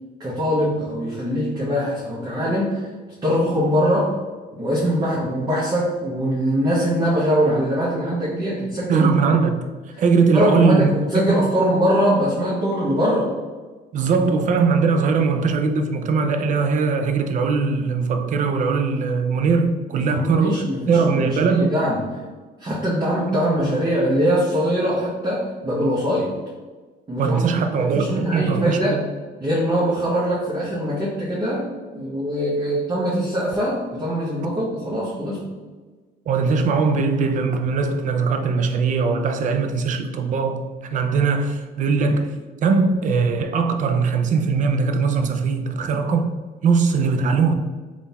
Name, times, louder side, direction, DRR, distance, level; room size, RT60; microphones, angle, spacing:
voice 1, 0.2-2.9 3.2-4.2 4.6-9.1 10.3-13.3 19.9-22.1 22.6-26.3 27.1-27.4 27.8-29.0 29.4-31.6 31.9-35.5, equal, 25° right, 0.9 m, -22 dB
voice 2, 8.9-9.7 10.0-10.9 11.3-11.4 13.9-21.7 23.3-23.4 27.2-29.1 36.3-46.3 46.6-47.5, right 5 dB, 50° right, 0.5 m, -20 dB
3.8 x 2.4 x 4.1 m
cardioid pair, 110°, 17 cm